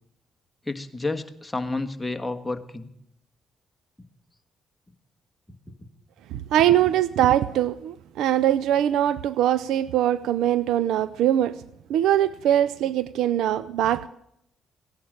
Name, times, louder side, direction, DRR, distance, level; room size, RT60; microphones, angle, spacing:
voice 1, 0.7-2.9, left 2 dB, 10° left, 1.6 m, -30 dB
voice 2, 6.5-11.6 11.9-14.1, right 11 dB, 85° right, 0.5 m, -22 dB
17.0 x 11.0 x 6.6 m
cardioid pair, 90°, 0 cm